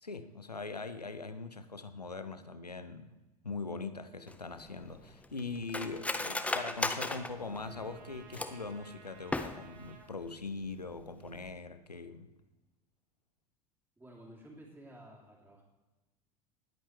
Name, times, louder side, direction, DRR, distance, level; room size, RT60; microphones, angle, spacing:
voice 1, 0.0-3.1 3.4-12.3, left 4 dB, 90° left, 11 dB, 0.7 m, -41 dB
Cutlery silverware, 4.3-8.7 9.2-9.9 10.2-10.3 10.6-11.0 11.3-11.5, left 2 dB, 5° left, 0.8 m, -37 dB
Trumpet, 5.7-10.1, right 6 dB, 55° right, 1.6 m, -57 dB
voice 2, 14.0-15.6, right 1 dB, 10° right, -3 dB, 3.2 m, -53 dB
20.0 x 8.6 x 3.3 m, 1.1 s
figure-of-eight pair, 70°, 20 cm